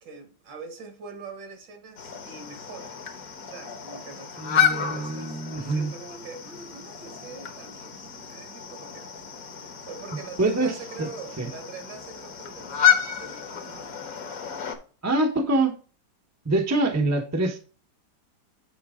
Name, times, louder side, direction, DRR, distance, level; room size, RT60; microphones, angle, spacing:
voice 1, 0.0-3.0 3.4-5.4 5.7-9.1 9.4-14.0, right 4 dB, 65° right, 2.1 m, -43 dB
sound 1, 2.0-14.8, left 9 dB, 55° left, 1.4 m, -30 dB
voice 2, 4.4-5.9 10.4-11.1 11.4-11.5 15.0-15.7 16.4-17.6, right 2 dB, 15° right, 0.6 m, -25 dB
8.7 x 4.6 x 3.6 m
omnidirectional pair, 2.1 m